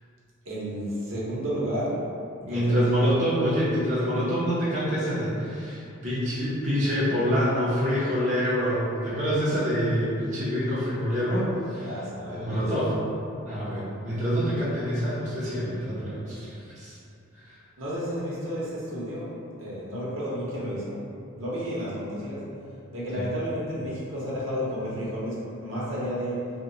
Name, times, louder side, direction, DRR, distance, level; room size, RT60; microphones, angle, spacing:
voice 1, 0.5-2.0 2.4-3.1 11.8-12.7 17.8-19.3 19.6-21.0 21.3-22.5 22.9-26.5, equal, 70° right, -7 dB, 0.8 m, -32 dB
voice 2, 2.4-11.9 12.3-12.9 13.5-17.0 17.5-17.6 23.1-23.2, equal, 35° right, -10 dB, 0.6 m, -26 dB
2.8 x 2.1 x 3.7 m, 2.6 s
head